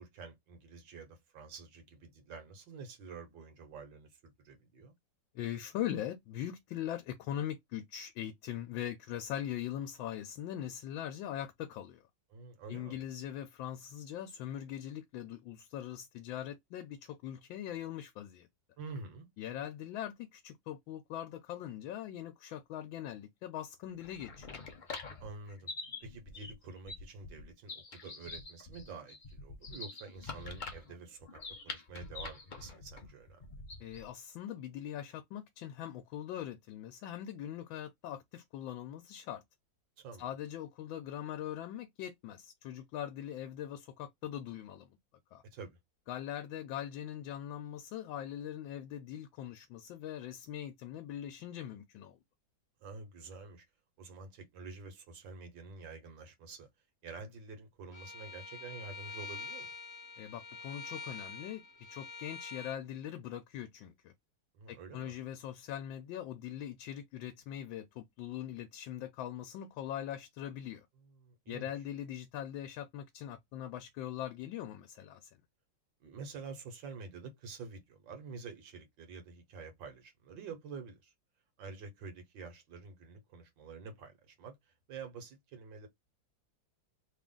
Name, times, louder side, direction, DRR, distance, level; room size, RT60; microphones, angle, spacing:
voice 1, 0.0-4.9 12.3-13.0 18.8-19.3 25.2-25.7 26.0-33.5 40.0-40.3 45.5-45.8 52.8-53.7 54.0-56.7 57.0-59.7 64.5-65.1 71.0-71.8 76.0-81.1 81.6-84.6 84.9-85.9, right 4 dB, 80° right, 1.8 m, -48 dB
voice 2, 5.3-12.0 12.7-18.5 19.4-24.6 33.8-39.4 40.2-44.9 45.3-45.4 46.1-52.2 60.2-61.6 61.9-64.1 64.7-70.9 71.5-75.3, left 11 dB, 85° left, 1.4 m, -41 dB
sound 1, 23.9-34.1, left 3 dB, 70° left, 0.4 m, -46 dB
Bowed string instrument, 57.9-62.8, left 4 dB, 20° left, 0.9 m, -46 dB
3.6 x 2.4 x 3.7 m
omnidirectional pair, 2.0 m